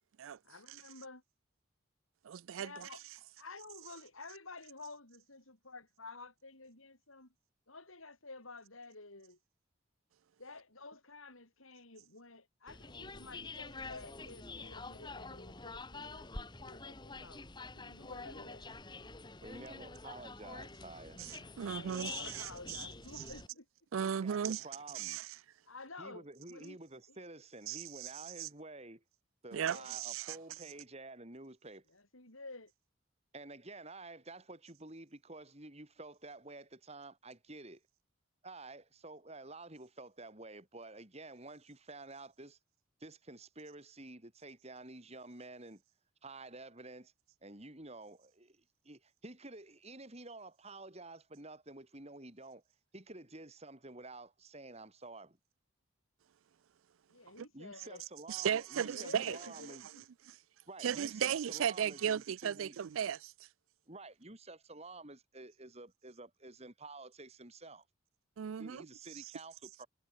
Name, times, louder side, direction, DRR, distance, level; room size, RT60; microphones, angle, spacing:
voice 1, 0.4-1.2 2.6-3.0 3.4-7.3 7.7-9.4 10.4-17.4 17.7-18.7 21.7-23.7 24.9-25.0 25.7-26.8 27.1-27.2 29.6-29.9 31.9-32.7 57.1-58.0 58.8-60.1, left 3 dB, 80° left, 8.0 m, -52 dB
voice 2, 2.2-2.9 21.2-22.8 23.9-24.7 24.9-25.3 27.7-28.1 28.4-28.5 29.5-30.3 58.3-59.4 60.8-63.3 68.4-68.9, right 8 dB, 75° right, 0.4 m, -36 dB
sound 1, 12.7-23.5, left 3 dB, 20° left, 1.6 m, -47 dB
voice 3, 19.4-21.2 24.2-25.2 26.0-29.0 29.4-31.8 33.3-37.8 38.4-42.6 43.0-45.8 46.2-47.1 47.4-52.6 52.9-55.4 57.5-59.8 60.7-62.8 63.9-67.8 68.6-69.9, right 2 dB, 30° right, 3.4 m, -50 dB
head